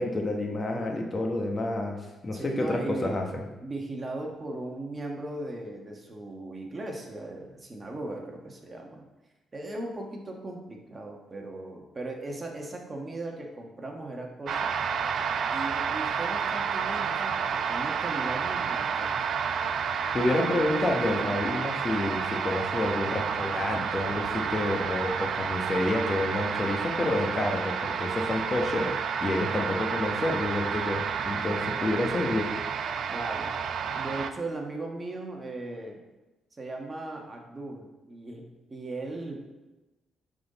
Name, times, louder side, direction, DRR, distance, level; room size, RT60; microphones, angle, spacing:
voice 1, 0.0-2.0 2.2-3.4 20.1-32.5, left 1 dB, 30° left, 2 dB, 1.0 m, -29 dB
voice 2, 2.3-3.2 3.6-9.0 9.5-14.8 15.5-19.1 33.1-33.5 34.0-36.0 36.6-39.5, right 2 dB, 30° right, 1 dB, 1.2 m, -38 dB
sound 1, 14.5-34.3, right 6 dB, 60° right, 0.4 m, -30 dB
9.4 x 3.9 x 4.0 m, 1.1 s
cardioid pair, 90°, 0 cm